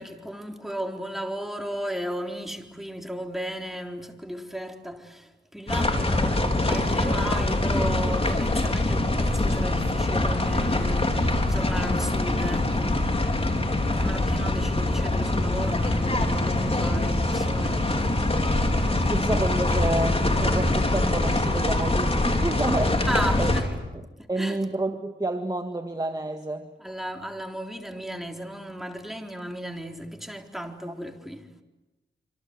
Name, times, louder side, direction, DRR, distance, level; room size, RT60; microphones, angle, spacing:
voice 1, 0.0-13.1 14.0-18.1 18.6-18.7 23.1-23.7 24.2-24.6 26.8-31.5, equal, ahead, 3.9 m, -35 dB
sound 1, 5.7-23.6, left 2 dB, 30° left, 4.3 m, -24 dB
voice 2, 18.9-23.5 24.3-26.7, right 2 dB, 20° right, 1.8 m, -29 dB
27.0 x 26.5 x 8.1 m
cardioid pair, 70°, 20 cm